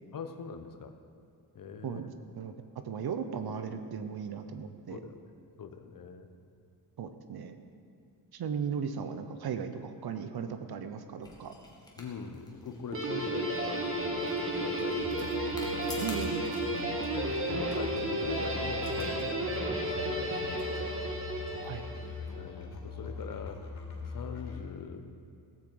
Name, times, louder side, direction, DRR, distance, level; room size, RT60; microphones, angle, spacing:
voice 1, 0.1-0.9 1.5-2.0 4.9-5.2 5.6-6.3 12.0-15.4 17.1-21.0 22.3-23.6 24.0-25.1, left 6 dB, 60° left, 7 dB, 1.2 m, -42 dB
voice 2, 1.8-2.5 2.8-5.0 7.0-7.6 8.3-11.5 16.0-16.5 21.6-21.8, right 7 dB, 75° right, 8 dB, 1.0 m, -37 dB
sound 1, 11.2-22.3, left 2 dB, 10° left, 2.1 m, -52 dB
Guitar, 12.9-22.2, right 1 dB, 35° right, 1.8 m, -33 dB
Musical instrument, 15.0-24.6, left 4 dB, 90° left, 3.0 m, -42 dB
16.5 x 8.8 x 7.9 m, 2.5 s
wide cardioid pair, 170°, 38 cm